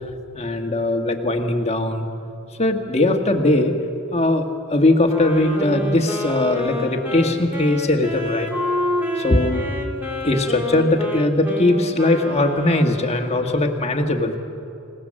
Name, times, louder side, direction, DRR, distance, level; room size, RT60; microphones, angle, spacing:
voice 1, 0.3-2.1 2.6-3.8 4.1-8.5 9.2-9.7 10.2-14.4, left 2 dB, 30° left, 3 dB, 1.7 m, -20 dB
Wind instrument woodwind instrument, 5.1-13.3, left 1 dB, 10° right, 2.9 m, -28 dB
27.0 x 18.0 x 7.6 m, 2.7 s
head